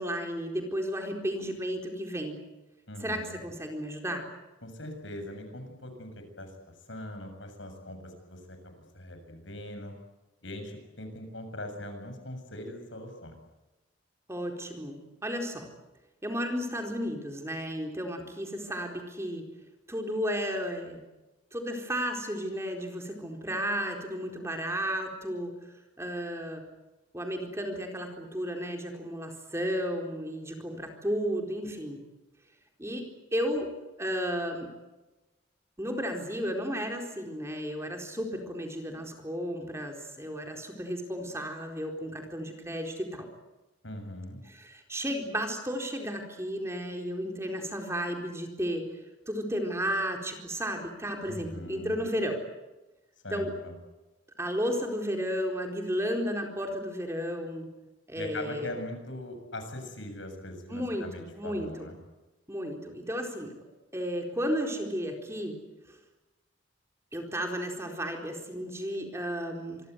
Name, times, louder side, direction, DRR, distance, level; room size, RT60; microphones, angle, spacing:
voice 1, 0.0-2.4 3.0-4.2 14.3-15.7 16.2-19.4 19.9-21.0 21.5-25.5 26.0-26.6 27.1-32.0 32.8-33.1 33.3-34.7 35.8-43.3 44.5-48.8 49.3-52.4 53.3-53.5 54.4-57.7 58.1-58.7 60.7-61.9 62.5-63.5 63.9-65.6 65.9-66.0 67.1-69.8, equal, 15° right, 3 dB, 4.2 m, -33 dB
voice 2, 2.9-3.4 4.6-6.5 6.9-9.9 10.4-13.3 43.8-44.4 51.3-52.0 53.2-53.7 58.1-62.0, left 1 dB, 70° left, 6 dB, 7.1 m, -41 dB
26.5 x 23.0 x 8.2 m, 1.1 s
head